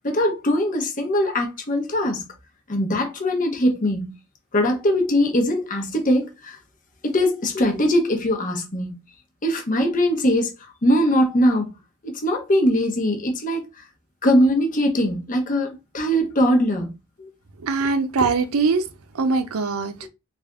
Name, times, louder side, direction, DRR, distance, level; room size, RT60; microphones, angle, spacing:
voice 1, 0.0-2.3 2.7-4.1 4.5-6.6 7.0-9.0 9.4-10.5 10.8-11.7 12.0-13.6 14.2-16.9 17.2-17.3 20.0-20.1, equal, 40° left, 0.9 m, -21 dB
voice 2, 17.6-18.8 19.2-19.9, right 4 dB, 85° right, 0.5 m, -22 dB
3.4 x 2.5 x 3.5 m
head